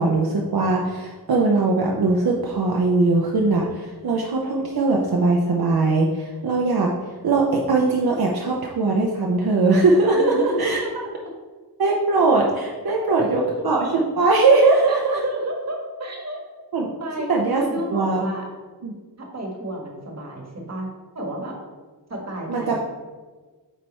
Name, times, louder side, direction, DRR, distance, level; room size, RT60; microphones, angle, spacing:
voice 1, 0.0-6.9 7.2-10.8 11.8-15.2 16.7-16.9 17.3-17.6 17.9-18.2 18.8-18.9 22.5-22.8, right 3 dB, 65° right, -1 dB, 0.8 m, -20 dB
voice 2, 10.1-10.9 12.9-13.5 14.9-16.4 17.0-17.3 17.6-18.5 19.2-20.9 21.1-21.6 22.1-22.8, right 1 dB, 40° right, 0 dB, 1.5 m, -30 dB
8.4 x 3.4 x 4.3 m, 1.4 s
wide cardioid pair, 125°, 39 cm